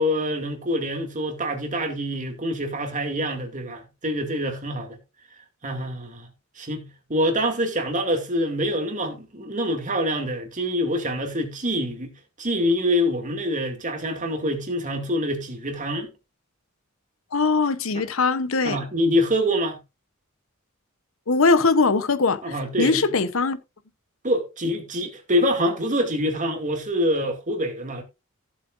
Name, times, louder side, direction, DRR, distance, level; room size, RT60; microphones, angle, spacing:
voice 1, 0.0-5.0 5.6-6.3 6.6-12.1 12.4-16.1 18.6-19.8 22.4-23.0 24.2-28.0, equal, 40° right, 2.4 m, -25 dB
voice 2, 17.3-18.8 21.3-23.6, left 4 dB, 70° left, 0.9 m, -21 dB
15.0 x 7.6 x 2.5 m
head